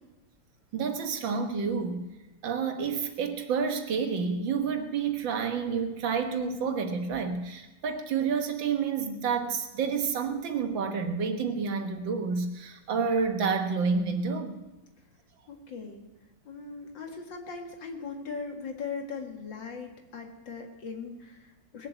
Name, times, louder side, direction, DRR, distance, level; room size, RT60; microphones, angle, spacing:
voice 1, 0.7-2.0 2.4-14.5, right 5 dB, 80° right, 6 dB, 2.1 m, -29 dB
voice 2, 15.5-16.0 16.5-21.9, left 5 dB, 75° left, 3 dB, 2.6 m, -39 dB
19.5 x 7.5 x 8.0 m, 1.1 s
omnidirectional pair, 2.1 m